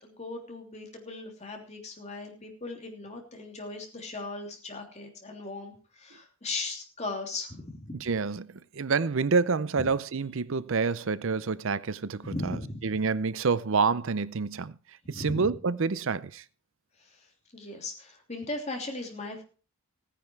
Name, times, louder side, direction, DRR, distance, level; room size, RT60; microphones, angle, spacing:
voice 1, 0.0-8.0 12.2-12.8 15.0-15.6 17.0-17.3 17.5-19.4, left 2 dB, 30° left, 3.1 m, -38 dB
voice 2, 8.0-12.6 12.8-14.7 15.1-16.4, right 4 dB, 60° right, 0.6 m, -28 dB
16.0 x 10.0 x 4.6 m
head